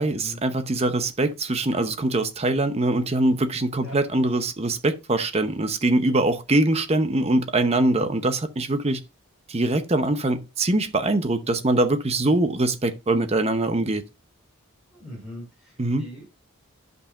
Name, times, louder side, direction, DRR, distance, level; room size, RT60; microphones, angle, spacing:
voice 1, 0.0-9.0 9.5-14.0 15.8-16.0, right 2 dB, 30° right, 0.7 m, -23 dB
voice 2, 14.9-16.4, equal, ahead, 5.0 m, -41 dB
11.5 x 5.4 x 2.5 m
head